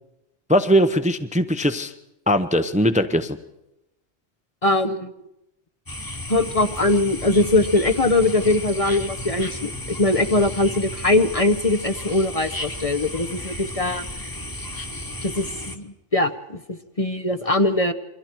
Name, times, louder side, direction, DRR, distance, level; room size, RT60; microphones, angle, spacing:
voice 1, 0.5-1.9 2.3-3.4, equal, 10° right, 9 dB, 0.7 m, -20 dB
voice 2, 4.6-5.1 6.3-14.0 15.2-15.5 15.7-17.9, left 2 dB, 35° left, 8 dB, 0.9 m, -21 dB
sound 1, 5.9-15.8, left 1 dB, 20° left, 1.4 m, -33 dB
28.5 x 23.5 x 4.6 m, 0.89 s
omnidirectional pair, 1.2 m